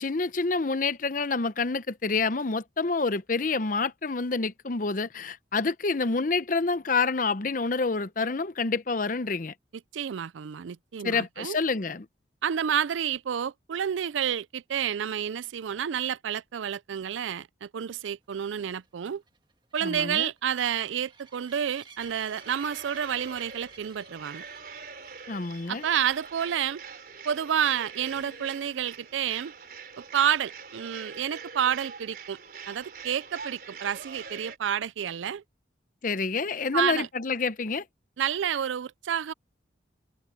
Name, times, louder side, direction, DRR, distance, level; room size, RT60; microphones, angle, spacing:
voice 1, 0.0-9.5 11.0-12.1 19.8-20.3 25.3-25.8 36.0-37.8, left 4 dB, 45° left, 0.7 m, -28 dB
voice 2, 9.9-11.6 12.4-19.2 19.7-24.4 25.7-26.8 27.2-29.5 30.0-32.4 32.7-35.4 36.7-37.1 38.2-39.3, right 9 dB, 85° right, 0.4 m, -29 dB
sound 1, 18.5-26.5 27.1-27.4 27.7-27.8 28.1-28.2 31.8-31.9, right 4 dB, 25° right, 1.9 m, -53 dB
sound 2, 22.0-34.6, right 5 dB, 50° right, 4.5 m, -44 dB
sound 3, 27.8-30.3 31.3-31.5 32.3-32.4 32.6-33.5 33.8-34.4 35.1-35.2 35.5-35.6, left 2 dB, 65° left, 6.7 m, -61 dB
head